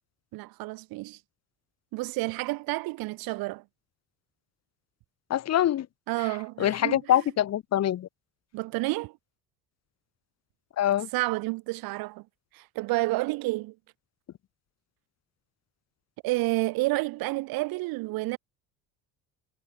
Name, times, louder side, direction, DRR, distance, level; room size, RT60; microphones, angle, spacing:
voice 1, 0.3-1.2 1.9-3.6 6.1-7.2 8.5-9.2 11.1-12.2 12.5-13.7 16.2-18.4, right 21 dB, 80° right, 5.7 m, -30 dB
voice 2, 5.3-5.9 6.6-8.1 10.8-11.1, left 11 dB, 45° left, 1.0 m, -24 dB
supercardioid pair, 90°, 35 cm